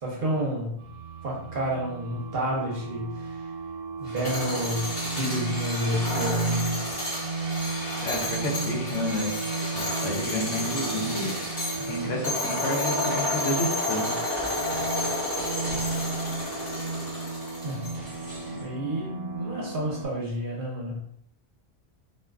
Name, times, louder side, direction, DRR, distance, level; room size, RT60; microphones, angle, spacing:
voice 1, 0.0-0.8 1.2-3.5 4.0-6.8 17.6-17.9 18.5-21.0, equal, 55° right, -3 dB, 0.8 m, -30 dB
sound 1, 0.8-20.1, right 4 dB, 90° right, 0.9 m, -34 dB
sound 2, 4.1-18.2, left 1 dB, 55° left, 1.1 m, -31 dB
sound 3, 4.7-12.5 13.1-18.6, equal, 5° right, 1.0 m, -45 dB
voice 2, 8.0-9.3 10.0-11.3 11.9-14.1, left 1 dB, 90° left, -1 dB, 1.0 m, -30 dB
2.4 x 2.4 x 2.3 m, 0.71 s
omnidirectional pair, 1.2 m